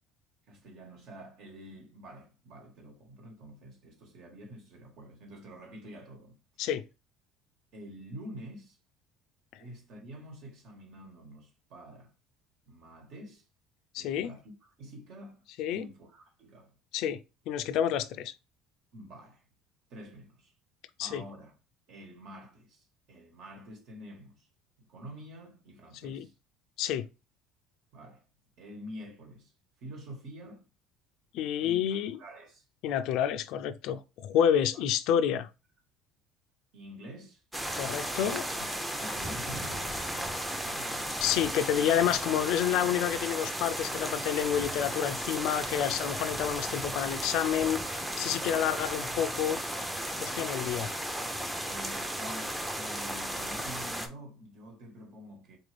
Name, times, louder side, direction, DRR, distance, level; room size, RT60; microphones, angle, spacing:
voice 1, 0.5-6.4 7.7-8.8 9.6-12.1 12.7-13.4 14.0-14.5 14.8-16.7 18.9-19.4 19.9-20.5 21.0-21.5 21.9-24.5 24.8-26.3 27.9-28.2 28.6-29.5 29.8-30.6 31.6-32.6 34.7-34.8 36.7-37.4 38.2-38.3 38.5-38.7 39.0-39.9 40.4-41.0 51.6-55.6, right 1 dB, 60° right, 1.4 m, -47 dB
voice 2, 13.9-14.3 15.6-15.9 16.9-17.2 17.5-18.3 21.0-21.2 26.0-26.3 26.8-27.1 31.3-32.2 32.8-35.5 37.7-38.5 41.2-49.6 50.2-50.9, left 9 dB, 70° left, 0.3 m, -29 dB
sound 1, 37.5-54.1, right 1 dB, 5° right, 0.6 m, -35 dB
3.9 x 2.5 x 3.3 m
supercardioid pair, 105°, 0 cm